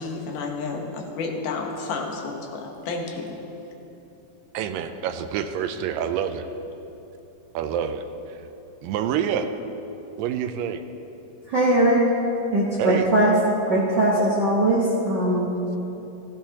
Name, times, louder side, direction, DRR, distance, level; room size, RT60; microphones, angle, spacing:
voice 1, 0.0-3.4, left 4 dB, 70° left, 1 dB, 2.5 m, -31 dB
voice 2, 4.5-6.5 7.5-8.4 8.8-9.5 10.2-10.8 12.8-13.1, right 8 dB, 85° right, 8 dB, 2.3 m, -27 dB
voice 3, 11.5-12.1 12.5-13.4 13.7-15.5, right 1 dB, 65° right, -5 dB, 1.0 m, -20 dB
15.0 x 15.0 x 2.9 m, 2.9 s
omnidirectional pair, 3.9 m